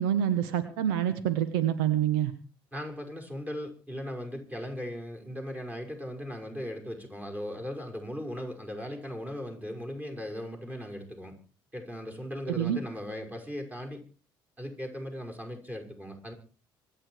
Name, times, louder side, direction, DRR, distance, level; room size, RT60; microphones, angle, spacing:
voice 1, 0.0-2.3 12.5-12.8, right 10 dB, 75° right, 13 dB, 1.2 m, -27 dB
voice 2, 2.7-11.3 11.7-14.0 14.6-16.3, equal, 15° right, 5 dB, 5.6 m, -38 dB
25.5 x 9.0 x 4.7 m, 0.35 s
hypercardioid pair, 55°, 12 cm